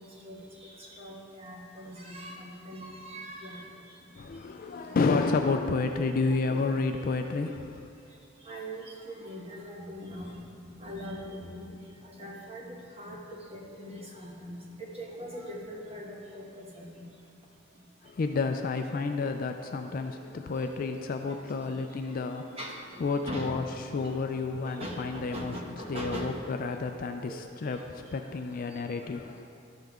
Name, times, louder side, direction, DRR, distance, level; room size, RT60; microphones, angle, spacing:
voice 1, 0.0-3.7 4.9-5.0 8.4-17.0 21.6-21.7 22.1-22.2 22.6-23.5 23.9-24.1 24.6-26.3 27.3-27.8 28.7-28.8, equal, 30° right, -2 dB, 1.2 m, -41 dB
voice 2, 4.2-7.9 18.0-22.6 23.0-23.6 23.9-25.5 25.9-29.4, left 4 dB, 45° left, 6 dB, 0.3 m, -30 dB
12.5 x 5.6 x 3.6 m, 2.5 s
head